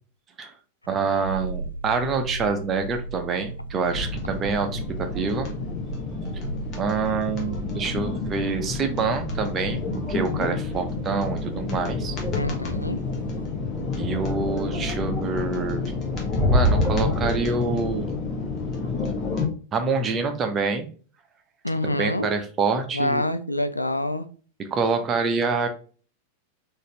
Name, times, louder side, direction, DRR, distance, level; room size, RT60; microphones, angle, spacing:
voice 1, 0.9-5.5 6.7-9.8 10.1-12.1 13.9-15.9 16.5-18.1 19.7-20.9 21.8-23.2 24.6-25.7, right 4 dB, 25° right, 0.7 m, -26 dB
sound 1, 1.1-13.5 13.7-13.8, right 2 dB, 80° right, 0.4 m, -37 dB
sound 2, 3.9-19.5, left 2 dB, 30° left, 1.1 m, -28 dB
voice 2, 12.3-13.0 21.6-22.3 22.9-24.3, left 1 dB, 85° left, 0.3 m, -26 dB
4.0 x 2.6 x 3.2 m
figure-of-eight pair, 90°, 0 cm